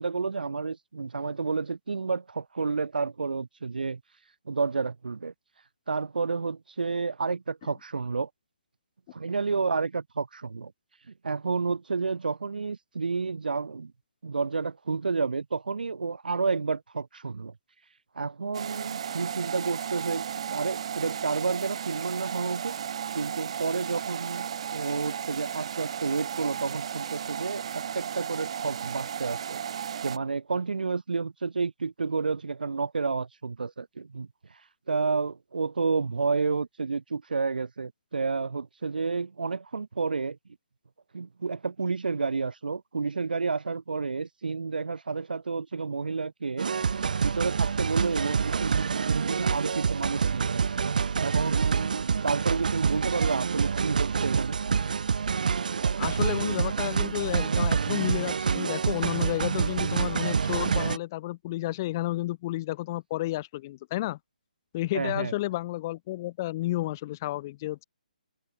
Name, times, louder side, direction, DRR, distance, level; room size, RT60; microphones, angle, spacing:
voice 1, 0.0-4.0 4.5-5.3 5.9-8.3 9.1-10.7 11.2-13.9 14.2-17.5 18.2-22.7 23.1-29.6 30.0-34.3 34.9-40.4 41.1-46.7 47.2-54.6 64.9-65.3, right 4 dB, 80° right, 3.5 m, -30 dB
sound 1, 18.5-30.2, right 8 dB, 40° right, 1.8 m, -35 dB
sound 2, 46.6-61.0, right 6 dB, 65° right, 0.5 m, -27 dB
voice 2, 56.0-64.2 64.7-67.8, left 17 dB, 20° left, 0.5 m, -31 dB
hypercardioid pair, 170°, 5 cm